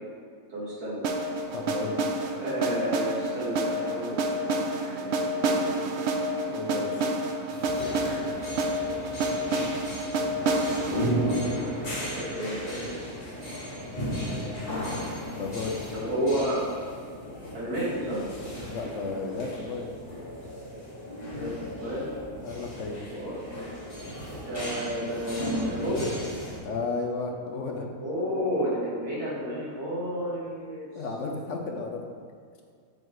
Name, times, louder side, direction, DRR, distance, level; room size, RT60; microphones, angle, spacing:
voice 1, 0.5-1.1 2.4-5.7 7.8-9.0 11.2-13.0 14.1-14.7 15.9-16.6 17.5-18.2 21.3-21.5 21.8-22.1 23.1-23.7 24.3-26.2 28.0-30.9, equal, 90° right, -7 dB, 2.4 m, -32 dB
sound 1, 1.0-13.0, right 1 dB, 60° right, 0.7 m, -29 dB
voice 2, 1.5-2.0 6.5-7.1 15.3-15.8 18.7-19.9 22.4-23.0 26.6-27.9 30.9-32.1, left 3 dB, 65° left, 2 dB, 0.9 m, -33 dB
sound 2, 7.5-26.6, equal, 30° left, 1.7 m, -35 dB
7.6 x 6.1 x 3.1 m, 2.1 s
omnidirectional pair, 1.5 m